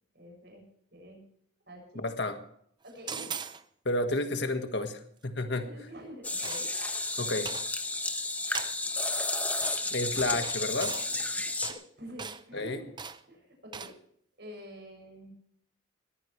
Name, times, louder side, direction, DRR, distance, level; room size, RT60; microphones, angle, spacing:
voice 1, 0.1-0.6 0.9-1.2 1.7-2.1 2.8-3.3 5.5-6.7 7.2-7.5 11.7-12.9 13.3-13.9 14.4-15.3, equal, 60° right, 2 dB, 7.2 m, -47 dB
voice 2, 1.9-2.4 3.8-5.6 7.2-7.5 9.9-10.9 12.5-12.8, left 2 dB, 65° left, 7 dB, 1.6 m, -31 dB
sound 1, 3.1-3.6 6.4-6.9 7.4-7.7 8.5-8.7 9.6-9.8 10.4-11.1 11.6-11.8 12.2-12.4 13.0-13.2 13.7-13.9, right 6 dB, 25° right, 0.6 m, -39 dB
sound 2, 6.2-11.7, left 2 dB, 10° left, 1.1 m, -32 dB
21.0 x 14.5 x 3.3 m, 0.67 s
head